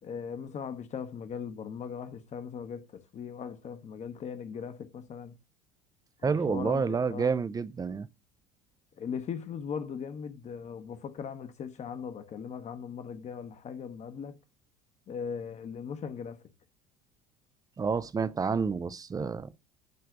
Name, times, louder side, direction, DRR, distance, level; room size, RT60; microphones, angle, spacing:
voice 1, 0.0-5.3 6.2-7.3 9.0-14.4 15.1-16.4, left 7 dB, 35° left, 1.1 m, -39 dB
voice 2, 6.2-8.1 17.8-19.6, right 5 dB, 20° right, 0.5 m, -29 dB
9.5 x 3.4 x 6.5 m
figure-of-eight pair, 65°, 20 cm